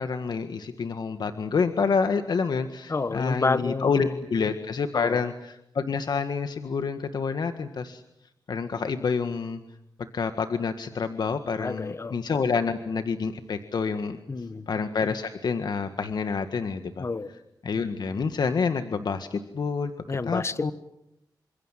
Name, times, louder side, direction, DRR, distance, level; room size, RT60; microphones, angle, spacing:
voice 1, 0.0-8.0 8.5-9.6 10.1-14.2 14.7-17.1 17.6-19.9 20.3-20.7, left 5 dB, 65° left, 8 dB, 1.7 m, -28 dB
voice 2, 2.9-4.2 4.9-5.2 11.6-12.2 14.3-14.7 17.0-17.3 20.1-20.7, left 3 dB, 35° left, 13 dB, 1.3 m, -29 dB
29.0 x 26.0 x 7.6 m, 0.80 s
wide cardioid pair, 90°, 8 cm